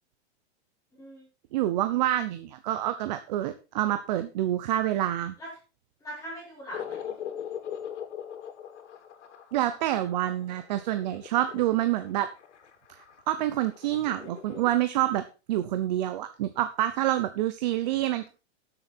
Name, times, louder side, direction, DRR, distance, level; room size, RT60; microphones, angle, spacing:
voice 1, 1.5-5.3 9.5-12.3 13.3-15.2 15.5-18.3, right 13 dB, 40° right, 10 dB, 0.8 m, -27 dB
voice 2, 6.0-7.1 17.8-18.3, equal, 10° left, -5 dB, 5.2 m, -42 dB
sound 1, 6.7-14.7, left 9 dB, 85° left, 3.1 m, -41 dB
12.5 x 7.9 x 4.4 m, 0.32 s
supercardioid pair, 175°, 34 cm